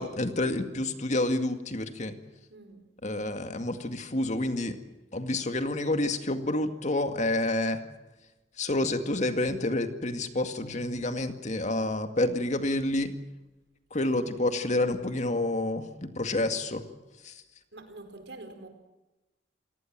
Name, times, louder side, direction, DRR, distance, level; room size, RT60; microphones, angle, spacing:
voice 1, 0.0-2.2 3.0-4.8 5.1-7.8 8.6-13.1 13.9-16.8 17.2-17.3, left 2 dB, 45° left, 8 dB, 2.1 m, -29 dB
voice 2, 2.5-2.9 14.0-14.3 17.7-18.7, right 2 dB, 85° right, 7 dB, 4.7 m, -46 dB
28.5 x 18.5 x 7.7 m, 1.0 s
head